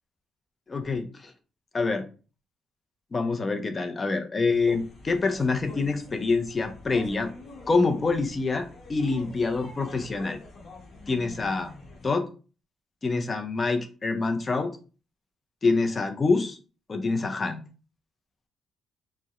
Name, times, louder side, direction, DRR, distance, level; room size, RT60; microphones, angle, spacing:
voice 1, 0.7-1.3 1.7-2.0 3.1-7.3 7.7-10.4 11.1-11.7 12.0-12.3 13.0-14.7 15.6-16.6 16.9-17.6, left 3 dB, 25° left, 6 dB, 0.4 m, -26 dB
sound 1, 4.5-12.1, left 2 dB, 60° left, 0.9 m, -46 dB
2.7 x 2.0 x 2.4 m, 0.36 s
cardioid pair, 140°, 0 cm